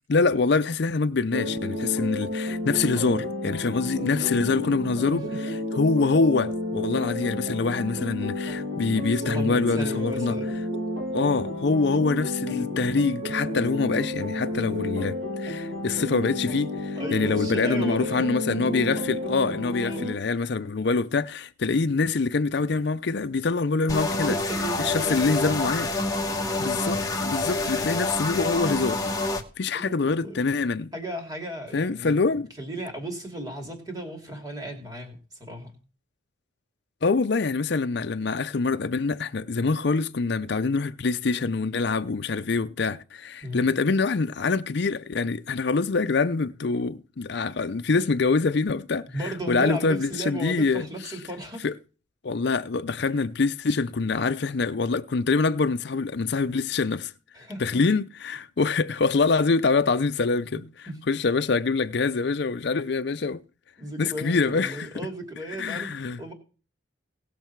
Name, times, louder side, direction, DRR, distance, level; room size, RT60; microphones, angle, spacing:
voice 1, 0.1-5.2 5.8-10.4 11.1-24.4 24.8-25.9 26.6-29.0 29.6-30.9 31.7-32.5 37.0-50.9 51.6-51.8 52.2-57.1 57.6-60.6 61.1-63.4 64.0-64.9 65.6-66.2, left 4 dB, 55° left, 0.5 m, -25 dB
sound 1, 1.3-20.1, left 1 dB, 70° right, 2.6 m, -31 dB
voice 2, 4.1-4.5 5.1-5.2 9.1-10.5 17.0-18.2 19.8-20.0 24.2-25.4 29.7-30.4 30.9-32.2 32.6-35.7 43.4-43.7 49.1-51.6 57.3-57.8 60.5-61.0 63.8-66.3, right 1 dB, 20° right, 2.6 m, -36 dB
sound 2, 23.9-29.4, left 2 dB, 20° left, 1.2 m, -27 dB
18.5 x 6.5 x 4.6 m
head